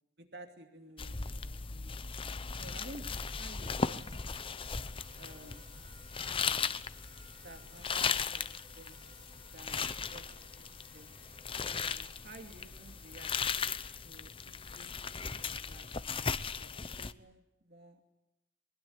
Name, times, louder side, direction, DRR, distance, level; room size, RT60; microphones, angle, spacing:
voice 1, 0.2-2.0 2.6-4.0 5.2-5.7 6.5-6.7 7.4-8.5 8.8-9.0 9.5-11.1 11.5-13.3 14.0-15.9 16.5-18.1, right 1 dB, 70° right, 5 dB, 2.7 m, -53 dB
sound 1, 1.0-17.1, left 5 dB, 30° left, 0.8 m, -37 dB
sound 2, 2.8-9.3, left 2 dB, 5° left, 3.4 m, -62 dB
sound 3, 3.1-14.0, right 3 dB, 50° right, 5.4 m, -62 dB
23.0 x 21.0 x 8.6 m, 0.88 s
head